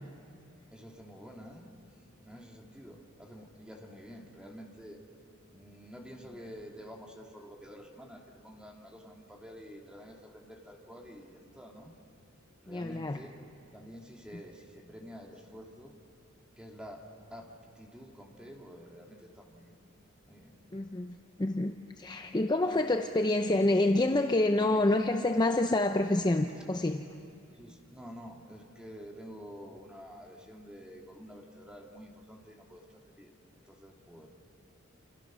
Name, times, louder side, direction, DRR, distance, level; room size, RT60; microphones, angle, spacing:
voice 1, 0.7-1.7 2.2-5.0 5.5-11.9 12.6-13.3 13.7-15.9 16.6-17.0 17.3-17.5 17.8-19.8 20.2-20.6 27.5-33.3 33.6-34.3, equal, 5° right, 0 dB, 2.7 m, -49 dB
voice 2, 12.7-13.2 20.7-21.1 21.4-27.1, left 2 dB, 20° left, 6 dB, 0.7 m, -27 dB
28.5 x 28.0 x 6.3 m, 2.6 s
head